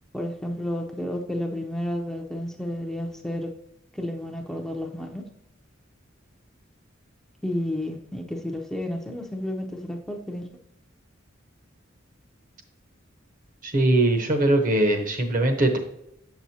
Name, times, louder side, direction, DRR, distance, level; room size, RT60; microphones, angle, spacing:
voice 1, 0.1-3.5 3.9-5.2 7.4-10.4, left 1 dB, ahead, 1 dB, 0.5 m, -31 dB
voice 2, 13.6-15.8, right 1 dB, 45° right, 5 dB, 0.9 m, -21 dB
8.0 x 6.1 x 2.8 m, 0.79 s
head